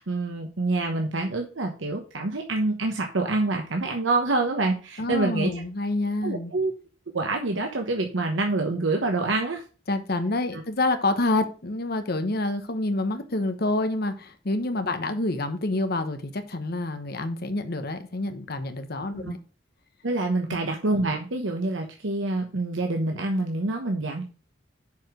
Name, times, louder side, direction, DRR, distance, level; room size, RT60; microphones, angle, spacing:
voice 1, 0.0-5.5 6.2-6.7 7.1-9.6 10.5-10.6 19.2-19.3 20.0-24.2, right 2 dB, 80° right, 1.1 m, -26 dB
voice 2, 5.0-6.5 9.9-19.4 20.5-20.6, left 2 dB, 55° left, 1.0 m, -27 dB
7.1 x 4.9 x 5.0 m
head